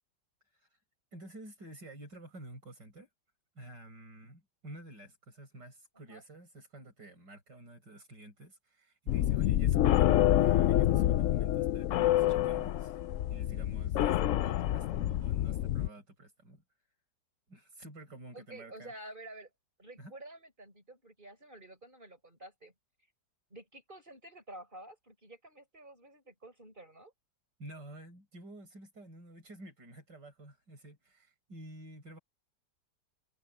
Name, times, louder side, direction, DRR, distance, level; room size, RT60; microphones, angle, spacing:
voice 1, 1.1-3.1 3.6-13.0 13.3-16.6 17.5-18.9 20.0-20.1 27.6-32.2, right 1 dB, 80° right, 7.8 m, -51 dB
sound 1, 9.1-15.9, left 12 dB, 80° left, 0.6 m, -27 dB
voice 2, 18.3-19.5 19.8-22.7 23.5-27.1, right 1 dB, 25° right, 7.2 m, -50 dB
omnidirectional pair, 1.9 m